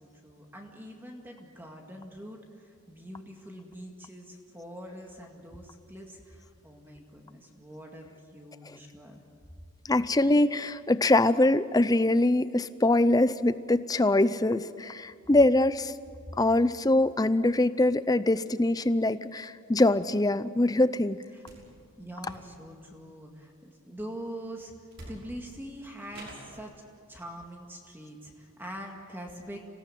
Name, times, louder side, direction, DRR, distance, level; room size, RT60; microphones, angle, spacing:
voice 1, 0.0-9.2 21.3-21.4 22.0-26.8 27.1-29.6, equal, 10° right, 1 dB, 2.1 m, -44 dB
voice 2, 9.9-15.9 16.4-21.2, left 2 dB, 15° left, 14 dB, 0.5 m, -23 dB
sound 1, 21.4-21.7 22.2-22.8 24.4-24.5 24.9-25.5 26.1-26.6, right 1 dB, 55° right, 5.8 m, -47 dB
26.5 x 18.0 x 9.2 m, 2.3 s
head